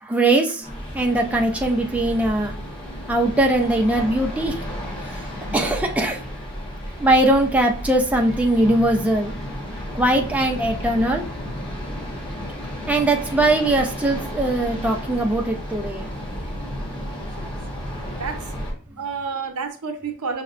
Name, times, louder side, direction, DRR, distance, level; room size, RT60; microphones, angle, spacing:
voice 1, 0.0-2.5 3.1-4.7 5.0-5.2 5.5-6.2 7.0-9.3 9.9-11.2 12.9-16.1, right 1 dB, 5° right, 1 dB, 0.3 m, -21 dB
sound 1, 0.6-18.7, equal, 20° left, 0.9 m, -32 dB
voice 2, 17.2-17.5 18.1-18.5 19.0-20.4, right 5 dB, 85° right, 5 dB, 0.6 m, -30 dB
6.0 x 2.1 x 2.4 m, 0.42 s
head